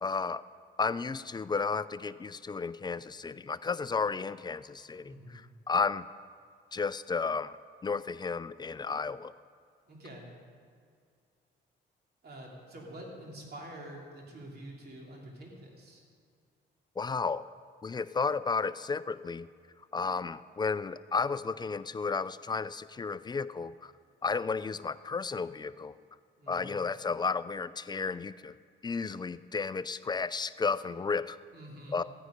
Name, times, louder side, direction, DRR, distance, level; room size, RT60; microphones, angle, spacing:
voice 1, 0.0-0.4 0.8-6.0 6.7-7.6 7.8-9.3 17.0-17.4 17.8-19.5 19.9-23.9 24.2-25.9 26.5-28.5 28.8-31.4 31.9-32.0, left 4 dB, 20° left, 15 dB, 0.4 m, -33 dB
voice 2, 5.0-5.4 9.9-10.3 12.2-16.0 26.4-26.8 31.5-32.0, right 1 dB, 50° right, -1 dB, 3.1 m, -47 dB
14.5 x 9.5 x 5.2 m, 2.2 s
cardioid pair, 90°, 20 cm